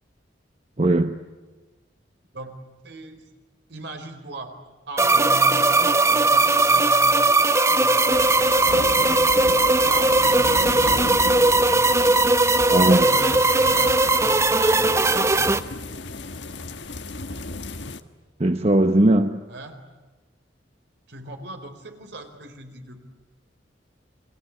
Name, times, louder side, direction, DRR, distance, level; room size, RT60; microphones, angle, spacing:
voice 1, 0.8-1.2 12.7-13.1 18.4-19.4, right 1 dB, 35° right, 8 dB, 1.0 m, -19 dB
voice 2, 2.8-3.3 3.7-4.6 4.9-9.3 9.8-11.9 12.8-15.6 19.5-19.9 21.1-23.0, right 2 dB, 65° right, 7 dB, 4.1 m, -38 dB
sound 1, 5.0-15.6, right 2 dB, 15° right, 0.8 m, -18 dB
sound 2, 8.1-18.0, left 2 dB, 75° left, 1.5 m, -34 dB
30.0 x 23.0 x 8.5 m, 1.2 s
head